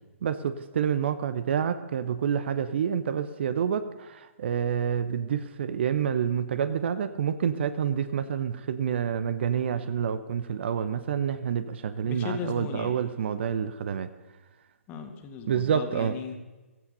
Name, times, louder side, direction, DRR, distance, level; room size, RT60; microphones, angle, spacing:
voice 1, 0.2-14.1 15.5-16.1, right 8 dB, 50° right, 12 dB, 0.9 m, -28 dB
voice 2, 12.0-13.0 14.9-16.4, left 6 dB, 20° left, 5 dB, 2.1 m, -36 dB
15.5 x 15.0 x 5.5 m, 1.2 s
figure-of-eight pair, 130°, 8 cm